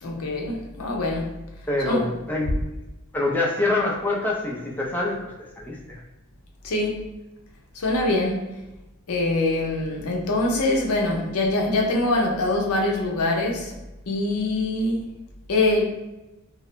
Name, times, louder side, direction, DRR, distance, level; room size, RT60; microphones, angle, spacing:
voice 1, 0.0-1.4 1.8-2.0 6.6-7.1 7.7-8.6 9.1-13.7 14.1-15.0 15.5-15.8, left 2 dB, 85° left, 0 dB, 0.5 m, -24 dB
voice 2, 1.7-2.6 3.1-6.0, left 2 dB, 10° left, -3 dB, 0.3 m, -26 dB
2.3 x 2.0 x 2.9 m, 1.0 s
head